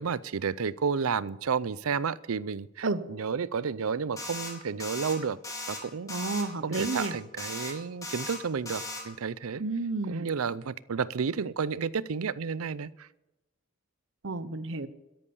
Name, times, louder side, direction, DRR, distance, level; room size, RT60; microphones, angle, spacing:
voice 1, 0.0-5.4 5.7-6.1 6.6-9.6 10.1-13.1, right 6 dB, 85° right, 20 dB, 0.5 m, -31 dB
sound 1, 4.2-4.5 4.8-5.1 5.4-5.8 6.1-6.4 6.7-7.1 7.4-7.7 8.0-8.4 8.7-9.0, left 2 dB, 15° left, 2.4 m, -37 dB
voice 2, 6.1-7.2 9.6-10.3 14.2-14.9, right 3 dB, 65° right, 14 dB, 0.9 m, -31 dB
13.0 x 11.0 x 6.9 m, 0.98 s
head